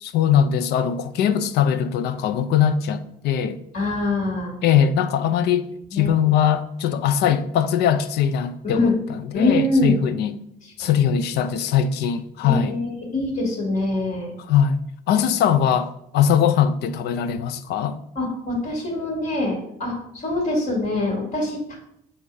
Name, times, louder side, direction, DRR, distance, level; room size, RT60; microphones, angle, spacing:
voice 1, 0.0-3.6 4.6-5.7 5.9-10.4 10.8-12.8 14.5-14.8 15.1-18.0, left 8 dB, 80° left, 0.5 m, -21 dB
voice 2, 3.7-4.5 5.9-6.1 8.6-8.9 9.3-10.0 10.6-10.9 12.4-14.3 18.2-21.7, left 2 dB, 55° left, 2.4 m, -24 dB
7.7 x 2.8 x 4.7 m
cardioid pair, 110°, 17 cm